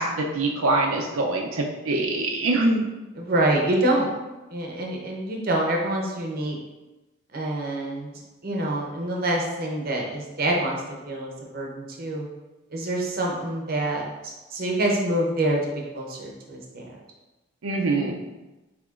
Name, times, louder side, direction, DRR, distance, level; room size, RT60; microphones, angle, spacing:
voice 1, 0.0-2.9 17.6-18.2, right 2 dB, 85° right, 0 dB, 0.5 m, -24 dB
voice 2, 3.2-4.1 4.5-6.6 7.3-8.1 8.4-10.8 11.0-12.3 12.7-16.9, right 1 dB, 45° right, -1 dB, 0.7 m, -26 dB
6.7 x 2.9 x 2.5 m, 1.1 s
head